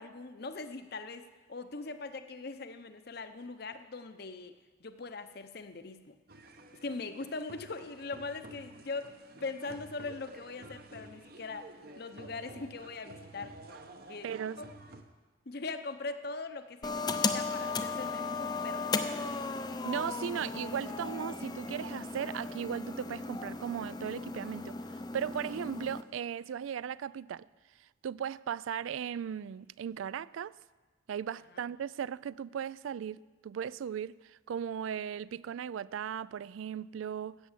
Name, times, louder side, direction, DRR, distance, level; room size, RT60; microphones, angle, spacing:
voice 1, 0.0-6.1 6.8-9.1 9.4-13.5 14.1-14.3 14.6-14.7 15.5-19.4 31.5-31.6, left 3 dB, 55° left, 0.8 m, -41 dB
sound 1, 6.3-15.0, right 2 dB, 50° right, 0.9 m, -51 dB
voice 2, 14.2-14.6 19.8-27.5 28.0-30.6 31.1-37.4, right 8 dB, 85° right, 0.3 m, -37 dB
sound 2, 16.8-26.0, left 4 dB, 20° left, 0.5 m, -36 dB
13.5 x 8.3 x 7.3 m
head